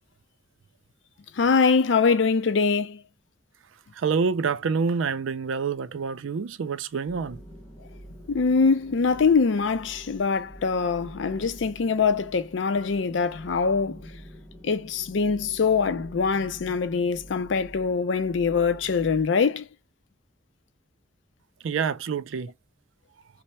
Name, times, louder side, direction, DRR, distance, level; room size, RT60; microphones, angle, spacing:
voice 1, 1.3-3.0 8.3-14.1 14.6-19.6, left 5 dB, 70° left, 0.5 m, -23 dB
voice 2, 3.9-7.4 21.6-22.5, right 5 dB, 90° right, 0.4 m, -27 dB
sound 1, 7.1-19.2, equal, 15° left, 0.9 m, -46 dB
3.2 x 2.1 x 4.1 m
head